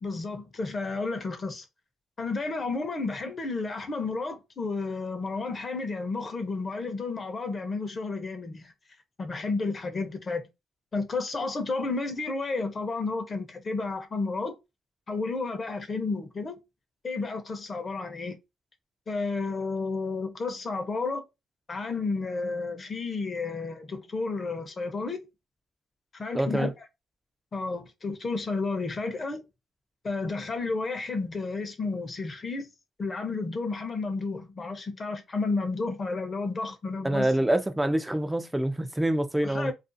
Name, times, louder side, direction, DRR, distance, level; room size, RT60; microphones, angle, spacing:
voice 1, 0.0-1.6 2.2-8.7 9.2-10.5 10.9-14.6 15.1-16.6 17.0-18.4 19.1-21.2 21.7-25.2 26.1-26.7 27.5-29.4 30.0-32.7 33.0-37.3 39.4-39.7, left 3 dB, 35° left, 0.7 m, -31 dB
voice 2, 26.3-26.7 37.0-39.7, right 1 dB, 10° right, 0.4 m, -26 dB
2.4 x 2.3 x 2.6 m
cardioid pair, 90°, 0 cm